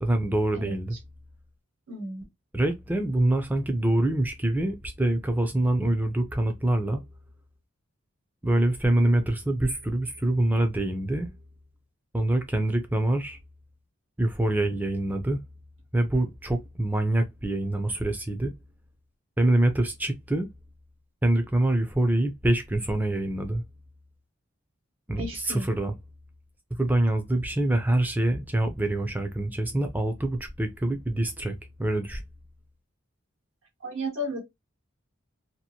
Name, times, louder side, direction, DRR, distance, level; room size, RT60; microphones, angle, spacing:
voice 1, 0.0-0.9 2.5-7.0 8.4-11.3 12.1-13.4 14.2-15.4 15.9-18.5 19.4-20.5 21.2-23.6 25.1-25.9 26.8-32.2, right 1 dB, 10° right, 0.4 m, -25 dB
voice 2, 1.9-2.3 25.2-25.7 33.8-34.4, equal, 75° right, 1.2 m, -33 dB
2.8 x 2.5 x 2.8 m
head